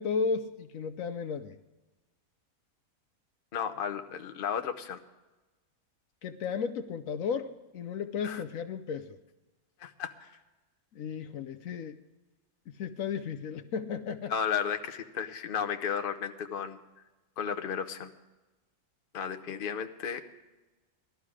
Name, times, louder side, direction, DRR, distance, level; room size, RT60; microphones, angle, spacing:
voice 1, 0.0-1.6 6.2-9.2 10.9-12.0 12.7-14.3, left 6 dB, 70° left, 8 dB, 1.0 m, -34 dB
voice 2, 3.5-5.0 8.2-8.4 9.8-10.3 14.3-16.8 17.4-18.1 19.1-20.2, left 7 dB, 45° left, 8 dB, 0.9 m, -33 dB
18.5 x 12.5 x 4.9 m, 1.1 s
omnidirectional pair, 1.5 m